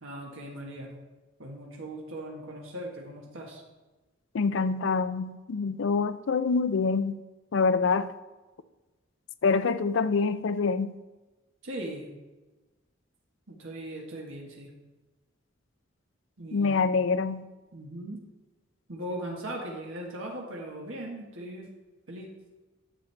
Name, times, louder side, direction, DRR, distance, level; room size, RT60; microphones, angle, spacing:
voice 1, 0.0-0.9 1.4-3.6 11.6-12.1 13.5-14.7 16.4-16.8 17.7-18.3 18.9-21.7 22.1-22.3, right 1 dB, 85° right, 1.5 m, -39 dB
voice 2, 4.3-7.2 7.5-8.1 9.4-11.0 16.5-17.5, left 4 dB, 70° left, 0.4 m, -26 dB
10.0 x 7.2 x 3.4 m
head